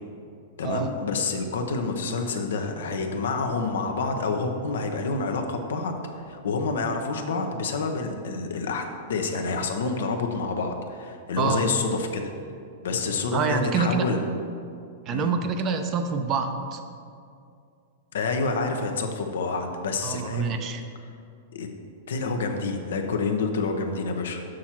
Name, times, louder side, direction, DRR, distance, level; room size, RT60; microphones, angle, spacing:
voice 1, 0.6-12.2 12.8-14.2 15.1-15.3 18.1-20.5 21.5-21.7 22.1-24.5, left 4 dB, 80° left, 4 dB, 0.8 m, -28 dB
voice 2, 13.3-14.1 15.1-16.8 20.0-20.8, right 5 dB, 35° right, 6 dB, 0.6 m, -26 dB
6.2 x 6.0 x 4.4 m, 2.4 s
hypercardioid pair, 125°, 0 cm